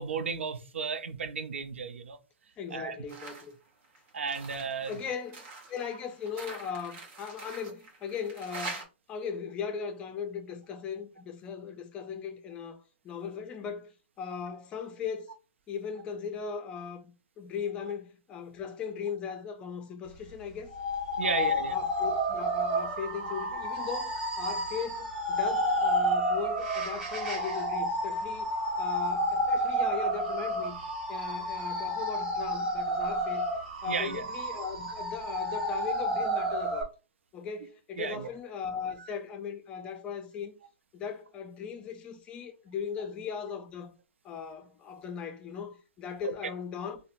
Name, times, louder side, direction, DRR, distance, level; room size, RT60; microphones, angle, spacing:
voice 1, 0.0-2.2 2.7-3.0 4.1-4.9 21.2-21.8 33.9-34.2 38.0-38.3 46.2-46.3, right 5 dB, 85° right, 0.6 m, -33 dB
voice 2, 2.6-3.5 4.9-15.3 15.7-20.7 21.2-28.5 28.8-30.8 31.1-33.5 33.8-36.9 37.3-40.5 40.9-43.9 44.2-47.0, left 6 dB, 15° left, 0.5 m, -38 dB
sound 1, 3.1-3.5 3.8-8.8, right 3 dB, 25° right, 1.1 m, -44 dB
sound 2, 20.7-36.8, equal, 5° right, 1.2 m, -30 dB
3.9 x 2.1 x 2.6 m
hypercardioid pair, 155°, 6 cm